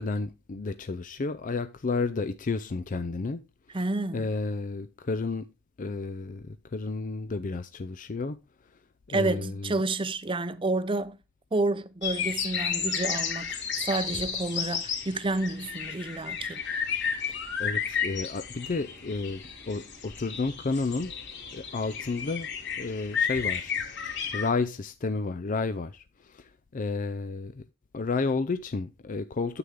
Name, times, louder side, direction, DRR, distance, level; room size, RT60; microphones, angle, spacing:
voice 1, 0.0-3.4 3.8-3.9 4.1-5.5 5.8-8.4 9.1-9.8 17.2-21.1 21.5-22.5 22.8-23.7 24.3-27.6 27.9-29.6, left 3 dB, 40° left, 0.5 m, -31 dB
voice 2, 3.7-4.3 9.1-11.2 11.5-16.6, right 2 dB, 25° right, 0.7 m, -30 dB
sound 1, 12.0-24.5, left 7 dB, 60° left, 2.7 m, -32 dB
9.7 x 7.9 x 3.6 m
head